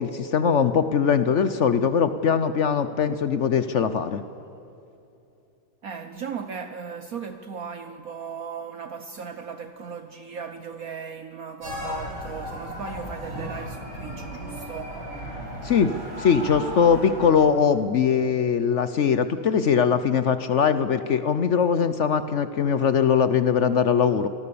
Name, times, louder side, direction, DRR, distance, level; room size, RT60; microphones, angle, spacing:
voice 1, 0.0-4.2 15.6-24.3, left 7 dB, 70° left, 0.6 m, -21 dB
voice 2, 5.8-15.0, right 6 dB, 55° right, 1.1 m, -37 dB
sound 1, 11.6-17.3, equal, 85° right, 8.5 m, -35 dB
26.5 x 20.0 x 7.0 m
omnidirectional pair, 2.2 m